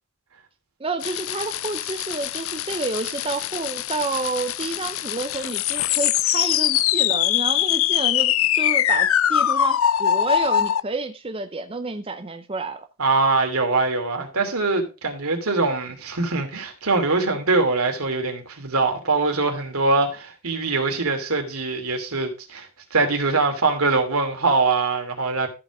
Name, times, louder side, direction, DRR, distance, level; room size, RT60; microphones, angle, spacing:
voice 1, 0.8-12.9, right 3 dB, 25° right, 0.6 m, -30 dB
sound 1, 1.0-10.8, left 11 dB, 65° left, 0.4 m, -23 dB
voice 2, 13.0-25.5, right 3 dB, 75° right, 2.8 m, -23 dB
14.0 x 5.1 x 4.8 m
head